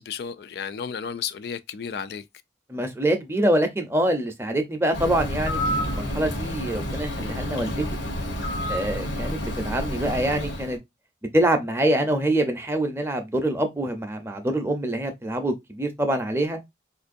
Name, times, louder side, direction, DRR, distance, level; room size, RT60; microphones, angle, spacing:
voice 1, 0.0-2.2, left 7 dB, 60° left, 0.3 m, -33 dB
voice 2, 2.7-7.8 8.7-10.8 11.3-16.6, right 1 dB, 15° right, 0.6 m, -25 dB
Bird, 4.9-10.8, equal, 80° left, 1.0 m, -29 dB
4.4 x 2.5 x 2.5 m
head